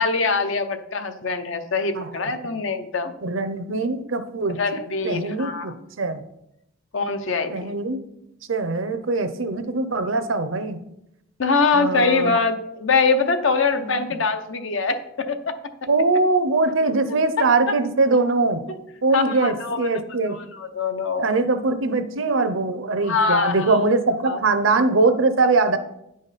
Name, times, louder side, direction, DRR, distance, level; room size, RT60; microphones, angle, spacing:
voice 1, 0.0-3.1 4.5-5.7 6.9-7.5 11.4-15.6 17.4-17.5 18.7-18.8 19.1-21.3 23.0-23.8 24.2-24.4, left 4 dB, 70° left, 8 dB, 0.7 m, -23 dB
voice 2, 3.2-4.6 5.0-6.2 7.5-8.0 8.5-10.8 11.7-12.4 13.8-14.1 15.9-18.6 19.0-20.4 21.2-25.8, right 3 dB, 75° right, 10 dB, 0.7 m, -22 dB
9.7 x 5.2 x 4.1 m, 0.82 s
head